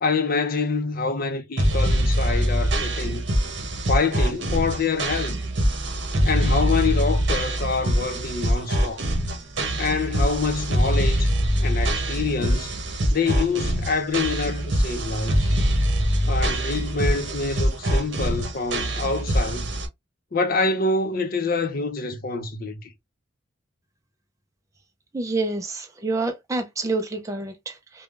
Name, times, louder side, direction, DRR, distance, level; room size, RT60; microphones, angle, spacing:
voice 1, 0.0-3.2 3.9-5.3 6.2-9.0 9.8-11.3 11.6-12.7 13.1-15.6 16.3-19.7 20.3-22.9, left 4 dB, 50° left, 0.6 m, -26 dB
sound 1, 1.6-19.9, equal, 65° right, 0.8 m, -23 dB
voice 2, 25.1-28.0, right 3 dB, 15° right, 0.4 m, -28 dB
3.4 x 2.2 x 2.3 m
head